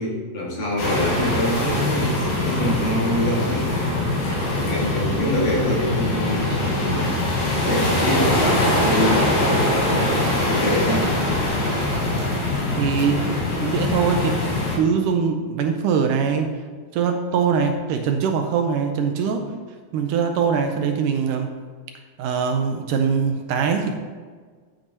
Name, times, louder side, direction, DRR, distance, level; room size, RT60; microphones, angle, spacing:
voice 1, 0.0-2.1 2.4-3.7 4.5-9.5 9.8-10.0 10.4-11.2, equal, 55° left, -4 dB, 3.0 m, -25 dB
sound 1, 0.8-14.8, left 1 dB, 90° left, 4.5 m, -22 dB
voice 2, 12.7-13.3 13.6-14.4 14.8-16.5 16.9-19.5 19.9-21.5 22.2-24.0, right 6 dB, 80° right, 5 dB, 2.1 m, -22 dB
13.0 x 8.4 x 2.9 m, 1.5 s
omnidirectional pair, 3.9 m